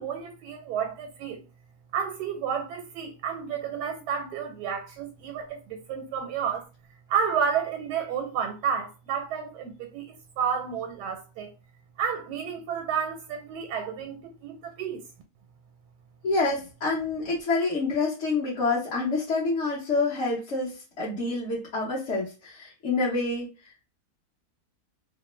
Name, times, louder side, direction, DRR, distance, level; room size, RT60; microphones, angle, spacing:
voice 1, 0.0-1.4 1.9-6.6 7.1-11.5 12.0-15.0, right 7 dB, 90° right, 1.2 m, -31 dB
voice 2, 16.2-23.5, left 3 dB, 50° left, 1.1 m, -27 dB
3.0 x 2.1 x 3.0 m
omnidirectional pair, 1.7 m